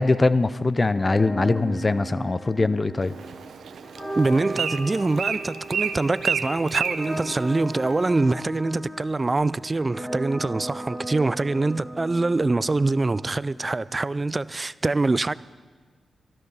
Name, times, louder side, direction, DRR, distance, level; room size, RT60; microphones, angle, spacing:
voice 1, 0.0-3.1, left 3 dB, 35° left, 0.6 m, -22 dB
sound 1, 0.8-13.8, right 1 dB, 5° left, 2.2 m, -37 dB
Bird, 3.0-8.2, right 6 dB, 80° right, 0.7 m, -31 dB
voice 2, 4.2-15.3, right 3 dB, 30° right, 0.3 m, -24 dB
13.0 x 12.0 x 5.5 m
cardioid pair, 55°, 0 cm